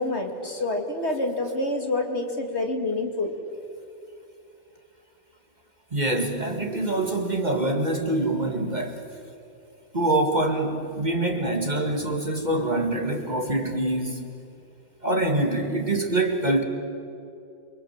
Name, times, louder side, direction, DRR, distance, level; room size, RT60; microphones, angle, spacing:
voice 1, 0.0-3.4, left 2 dB, 50° left, 3 dB, 2.7 m, -27 dB
voice 2, 5.9-9.1 9.9-14.3 15.0-16.6, right 2 dB, 30° right, 4 dB, 2.0 m, -25 dB
29.0 x 24.0 x 7.4 m, 2.7 s
omnidirectional pair, 1.5 m